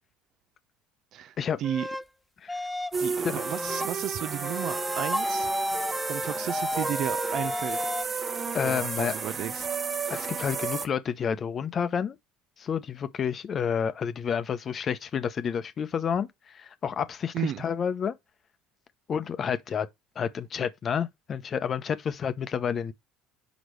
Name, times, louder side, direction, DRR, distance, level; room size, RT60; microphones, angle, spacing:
voice 1, 1.1-1.9 3.0-5.5 6.0-7.9 8.6-9.7 17.3-17.6, right 11 dB, 55° right, 0.6 m, -33 dB
sound 1, 1.6-2.0 2.5-3.0 3.4-3.9 4.4-8.0, left 1 dB, 5° left, 0.4 m, -32 dB
sound 2, 2.9-10.9, right 5 dB, 30° right, 1.1 m, -32 dB
voice 2, 8.5-9.1 10.1-12.2 12.6-18.1 19.1-19.9 20.2-22.9, left 7 dB, 40° left, 0.8 m, -30 dB
6.2 x 5.1 x 3.2 m
hypercardioid pair, 70°, 0 cm